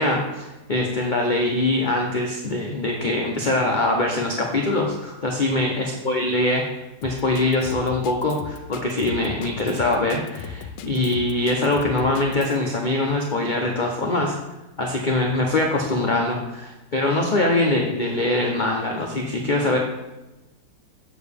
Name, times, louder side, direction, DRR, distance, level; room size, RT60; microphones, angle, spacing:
voice 1, 0.0-6.7 7.0-14.4 14.8-19.8, left 2 dB, 50° left, 0 dB, 0.5 m, -23 dB
Drum kit, 7.0-12.6, left 7 dB, 75° left, 1.2 m, -38 dB
7.5 x 6.8 x 3.5 m, 1.0 s
omnidirectional pair, 2.0 m